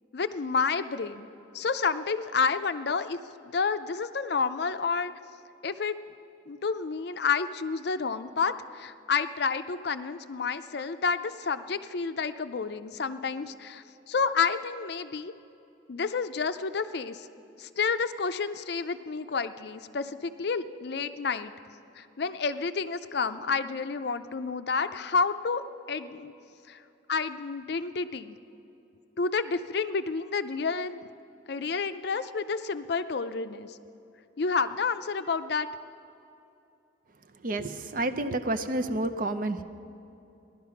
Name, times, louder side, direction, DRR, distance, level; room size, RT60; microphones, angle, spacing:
voice 1, 0.1-1.3 1.5-3.2 3.4-5.1 5.6-5.9 6.5-15.3 15.9-17.3 17.6-21.5 22.0-25.6 25.9-26.3 26.7-26.8 27.1-28.4 29.2-31.1 31.5-33.8 34.4-35.7, left 5 dB, 55° left, 11 dB, 0.5 m, -30 dB
voice 2, 37.3-39.6, right 2 dB, 45° right, 11 dB, 0.5 m, -30 dB
16.5 x 11.5 x 5.8 m, 2.7 s
head